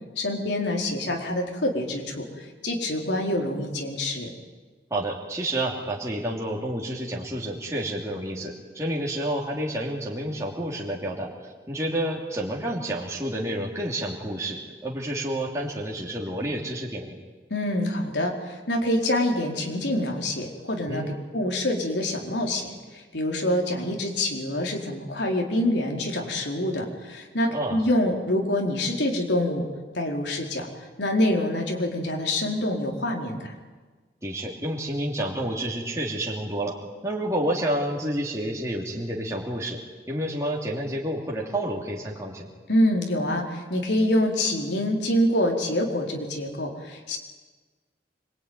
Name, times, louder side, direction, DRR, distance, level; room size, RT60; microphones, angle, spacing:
voice 1, 0.2-4.3 17.5-21.0 21.3-29.6 29.9-30.7 31.0-33.5 42.7-47.2, left 1 dB, 85° left, 1 dB, 4.3 m, -26 dB
voice 2, 4.9-17.1 20.9-21.2 27.5-27.8 34.2-36.7 37.0-39.8 40.1-42.5, right 1 dB, 15° right, -3 dB, 2.9 m, -29 dB
25.5 x 23.5 x 9.6 m, 1.3 s
head